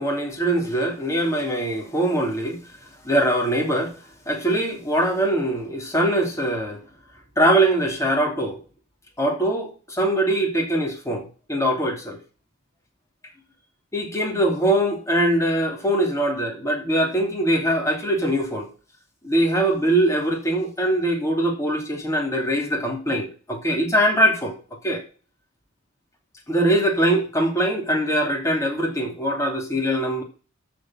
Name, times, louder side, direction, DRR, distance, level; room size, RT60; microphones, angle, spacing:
voice 1, 0.0-2.6 3.0-3.9 4.3-6.8 7.4-8.6 9.2-12.2 13.9-18.7 19.2-24.5 24.8-25.0 26.5-30.2, right 1 dB, 15° left, 2.7 m, -22 dB
13.5 x 4.5 x 6.2 m
head